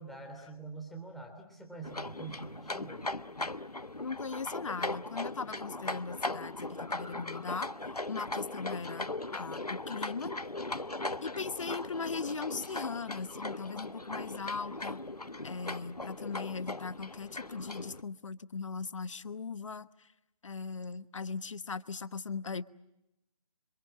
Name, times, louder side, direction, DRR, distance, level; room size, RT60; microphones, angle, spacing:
voice 1, 0.0-3.0, right 3 dB, ahead, 1 dB, 3.3 m, -45 dB
sound 1, 1.8-18.0, left 2 dB, 90° left, 1.2 m, -39 dB
voice 2, 4.0-7.7 8.1-9.1 9.3-10.3 11.2-15.0 15.4-19.9 20.4-22.7, left 5 dB, 55° left, 14 dB, 1.2 m, -39 dB
26.5 x 26.0 x 7.5 m, 0.90 s
figure-of-eight pair, 145°, 19 cm